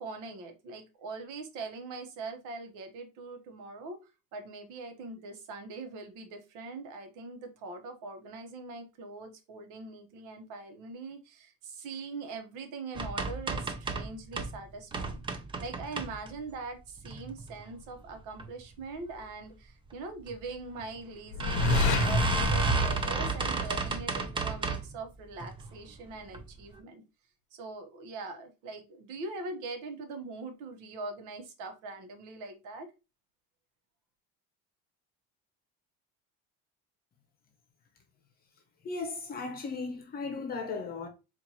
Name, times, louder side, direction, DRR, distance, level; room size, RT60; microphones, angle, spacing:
voice 1, 0.0-4.0 4.3-15.2 15.6-27.0 27.5-32.9, right 3 dB, 80° right, 1.1 m, -42 dB
sound 1, 13.0-14.6 14.9-16.5 17.0-17.6 18.1-18.5 18.7-18.8 19.1-19.2 20.3-20.4 20.8-20.9 21.4-25.0 25.4-25.8 26.3-26.4 26.8-26.9, right 4 dB, 15° right, 0.4 m, -32 dB
sound 2, 21.3-24.2, left 4 dB, 90° left, 0.7 m, -29 dB
voice 2, 38.8-41.1, left 4 dB, 30° left, 0.8 m, -36 dB
4.4 x 2.5 x 2.8 m
cardioid pair, 150°, 30 cm